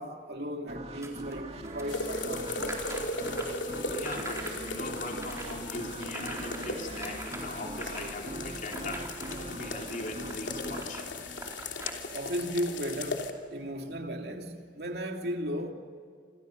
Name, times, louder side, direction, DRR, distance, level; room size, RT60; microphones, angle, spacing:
voice 1, 0.0-2.5 12.1-15.7, equal, 60° right, 2.8 m, -35 dB
sound 1, 0.7-12.1, right 1 dB, 35° right, 2.2 m, -42 dB
sound 2, 1.0-11.9, right 2 dB, 15° right, 4.1 m, -45 dB
sound 3, 1.9-13.3, left 2 dB, 85° left, 3.0 m, -37 dB
voice 2, 3.5-11.1, left 2 dB, 45° left, 3.9 m, -40 dB
28.5 x 27.5 x 6.6 m
head